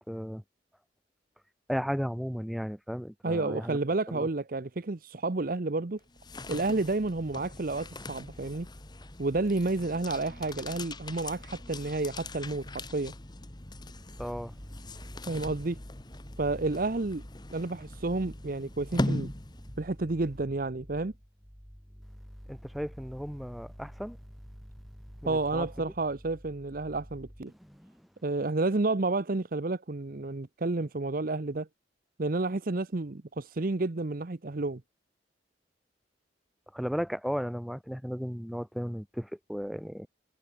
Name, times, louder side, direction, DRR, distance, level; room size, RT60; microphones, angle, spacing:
voice 1, 0.1-0.4 1.7-3.8 4.1-4.3 14.2-14.5 22.5-24.2 25.2-25.7 27.6-27.9 36.7-40.1, equal, ahead, 2.4 m, -35 dB
voice 2, 3.2-6.0 6.5-8.7 9.2-13.1 15.3-15.8 16.4-17.2 17.5-19.3 19.8-21.1 25.3-27.5 28.2-31.7 32.2-34.8, right 2 dB, 50° right, 0.8 m, -30 dB
sound 1, 6.0-20.0, left 1 dB, 25° left, 1.3 m, -40 dB
head